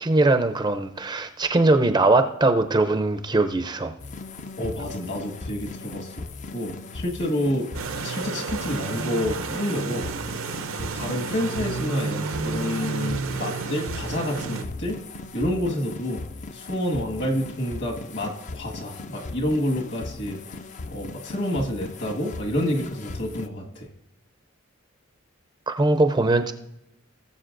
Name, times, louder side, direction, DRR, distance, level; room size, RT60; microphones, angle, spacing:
voice 1, 0.0-3.9 25.7-26.5, right 2 dB, 20° right, 8 dB, 0.5 m, -21 dB
sound 1, 4.0-23.5, left 3 dB, 35° left, 0.4 m, -38 dB
voice 2, 4.6-6.2 6.5-7.7 8.0-10.1 10.8-15.0 15.3-16.3 16.5-20.4 20.9-23.9, equal, 55° left, 1 dB, 1.7 m, -28 dB
sound 2, 7.7-14.6, right 4 dB, 70° right, 0.6 m, -31 dB
19.0 x 7.2 x 2.6 m, 0.84 s
head